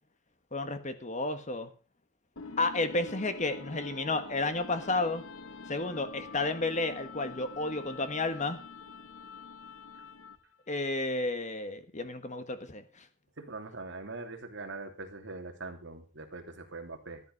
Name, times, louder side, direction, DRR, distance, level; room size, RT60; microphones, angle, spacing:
voice 1, 0.5-1.7 2.6-5.2 5.7-8.6 10.7-12.8, left 2 dB, 35° left, 10 dB, 1.6 m, -32 dB
sound 1, 2.4-10.5, left 4 dB, 75° left, 1.0 m, -46 dB
voice 2, 13.4-17.2, right 3 dB, 60° right, 4 dB, 2.8 m, -42 dB
14.5 x 11.0 x 5.4 m, 0.36 s
head